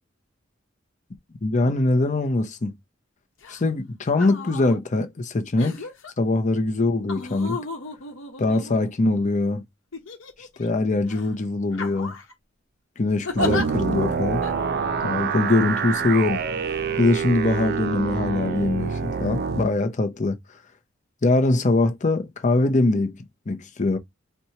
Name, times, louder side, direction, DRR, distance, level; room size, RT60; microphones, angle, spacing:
voice 1, 1.4-2.7 3.5-5.8 6.2-7.6 8.4-9.6 10.6-12.1 13.0-14.4 15.0-16.4 17.0-20.4 21.2-23.2 23.5-24.0, left 2 dB, 40° left, 0.6 m, -22 dB
sound 1, 3.4-3.6 4.1-4.8 5.6-6.1 7.1-9.1 9.9-10.7 11.1-11.3 11.7-12.3 13.2-13.6 14.4-14.5, left 3 dB, 75° left, 0.9 m, -33 dB
sound 2, 13.4-19.6, right 5 dB, 55° right, 0.4 m, -26 dB
4.4 x 2.2 x 2.7 m
head